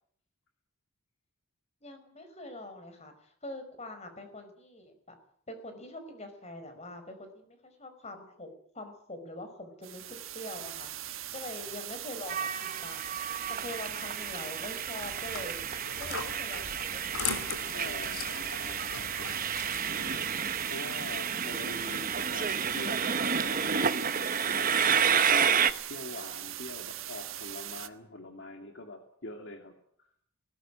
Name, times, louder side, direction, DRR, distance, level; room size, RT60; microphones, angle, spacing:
voice 1, 1.8-5.2 5.5-8.5 8.7-10.9 11.3-13.1 13.5-15.7 16.0-17.1, left 1 dB, 30° left, 8 dB, 5.0 m, -44 dB
sound 1, 9.8-27.9, right 13 dB, 70° right, 1.4 m, -41 dB
Train, 12.3-25.7, right 7 dB, 40° right, 1.1 m, -30 dB
sound 2, 15.0-20.2, left 5 dB, 90° left, 4.0 m, -40 dB
voice 2, 17.7-18.8 20.7-24.7 25.0-30.1, left 2 dB, 60° left, 4 dB, 2.5 m, -44 dB
20.0 x 19.0 x 8.9 m, 0.65 s
head